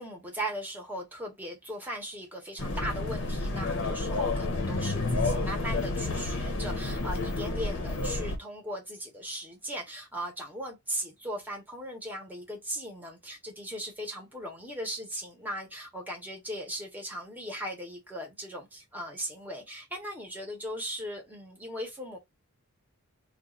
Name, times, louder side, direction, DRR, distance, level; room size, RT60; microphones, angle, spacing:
voice 1, 0.0-22.2, equal, 10° right, 1.1 m, -38 dB
sound 1, 2.6-8.4, left 2 dB, 55° left, 0.8 m, -30 dB
2.6 x 2.4 x 3.8 m
head